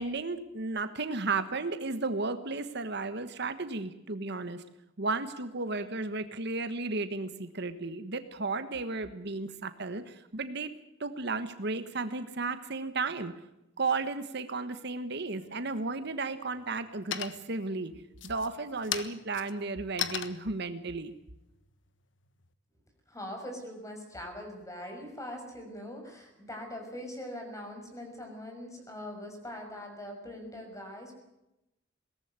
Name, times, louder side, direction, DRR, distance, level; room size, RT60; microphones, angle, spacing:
voice 1, 0.0-4.6 5.0-10.7 11.0-13.3 13.8-17.9 18.2-21.1, right 3 dB, 60° right, 10 dB, 1.4 m, -34 dB
sound 1, 15.4-16.0 16.4-16.9 17.1-17.7 18.1-22.5, left 9 dB, 75° left, 1.4 m, -38 dB
voice 2, 23.1-31.1, left 1 dB, 15° left, 3 dB, 6.1 m, -42 dB
22.0 x 18.0 x 8.2 m, 0.90 s
head